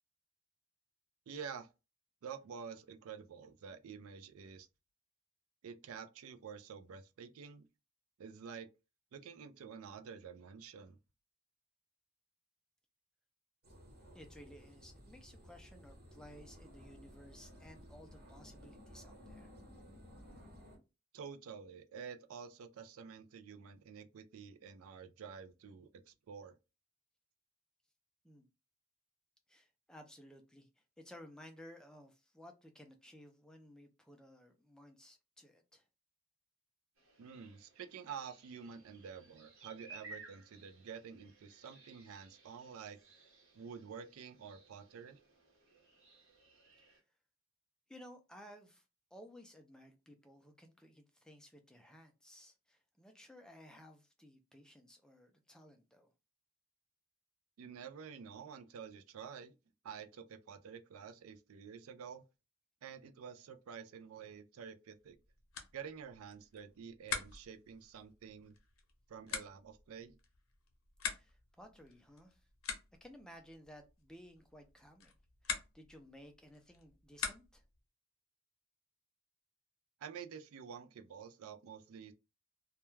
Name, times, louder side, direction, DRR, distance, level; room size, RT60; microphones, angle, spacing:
voice 1, 1.3-1.7 2.2-4.7 5.6-7.7 8.2-8.7 9.1-11.0 21.1-26.5 37.2-43.0 43.5-45.2 57.6-59.5 59.8-62.2 62.8-65.2 65.7-68.5 69.1-70.1 80.0-82.1, right 6 dB, 90° right, 0.4 m, -49 dB
sound 1, 13.6-20.8, equal, 45° right, 1.0 m, -56 dB
voice 2, 14.1-19.5 28.2-28.5 29.5-35.9 46.8-47.0 47.9-48.8 49.1-56.1 71.0-72.5 73.0-75.1 75.4-77.6, equal, 5° left, 0.3 m, -57 dB
sound 2, 37.0-47.0, right 3 dB, 75° right, 0.9 m, -59 dB
sound 3, 65.0-77.8, left 6 dB, 85° left, 0.7 m, -46 dB
2.3 x 2.2 x 3.1 m
head